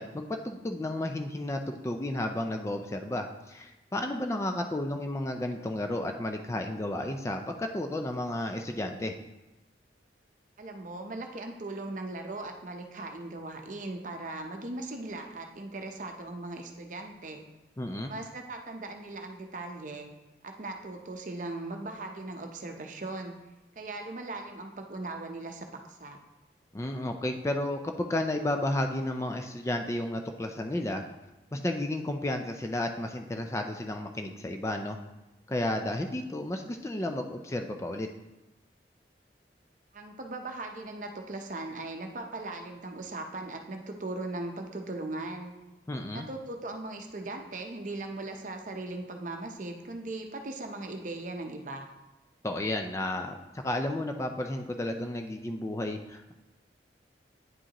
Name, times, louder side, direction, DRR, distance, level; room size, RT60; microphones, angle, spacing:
voice 1, 0.0-9.2 17.8-18.1 26.7-31.0 31.5-35.0 35.5-38.1 45.9-46.3 52.4-56.3, left 1 dB, 15° left, 4 dB, 0.3 m, -32 dB
voice 2, 10.6-17.4 18.1-20.1 20.4-23.3 23.8-26.2 39.9-45.5 46.1-51.9, right 2 dB, 45° right, 4 dB, 0.7 m, -39 dB
9.5 x 5.1 x 2.9 m, 1.0 s
head